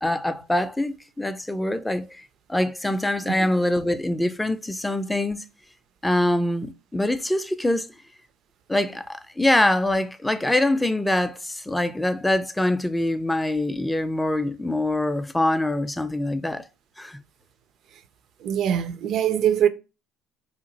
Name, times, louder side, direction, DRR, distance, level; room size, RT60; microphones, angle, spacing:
voice 1, 0.0-2.2 2.5-5.4 6.0-7.9 8.7-16.6 17.0-17.2, left 1 dB, 10° left, 0.4 m, -24 dB
voice 2, 18.4-19.7, right 9 dB, 60° right, 0.4 m, -23 dB
2.8 x 2.5 x 3.9 m
hypercardioid pair, 70°, 0 cm